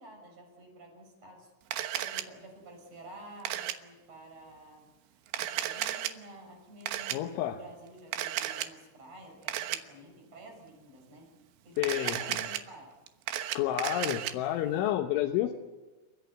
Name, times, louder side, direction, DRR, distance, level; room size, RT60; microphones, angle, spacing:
voice 1, 0.0-1.5 2.0-4.9 5.3-7.2 7.5-11.3 11.6-12.9, right 1 dB, 30° right, 1 dB, 7.4 m, -50 dB
Camera, 1.7-2.2 3.5-3.8 5.3-6.1 6.9-7.2 8.1-8.7 9.5-9.8 11.8-12.6 13.1-14.3, right 12 dB, 75° right, 3.5 m, -33 dB
voice 2, 7.1-7.6 11.8-12.4 13.5-15.6, left 12 dB, 75° left, 4 dB, 3.4 m, -30 dB
29.5 x 16.0 x 9.3 m, 1.2 s
omnidirectional pair, 5.8 m